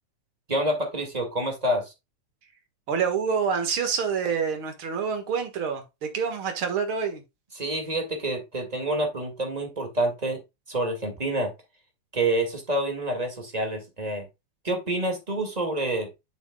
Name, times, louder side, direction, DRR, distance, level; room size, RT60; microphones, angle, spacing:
voice 1, 0.5-1.9 7.5-10.4 10.7-11.5 12.1-14.2 14.6-16.1, right 1 dB, 15° right, 1.5 m, -27 dB
voice 2, 2.9-7.2, right 6 dB, 50° right, 2.2 m, -27 dB
8.2 x 6.9 x 2.3 m
omnidirectional pair, 3.5 m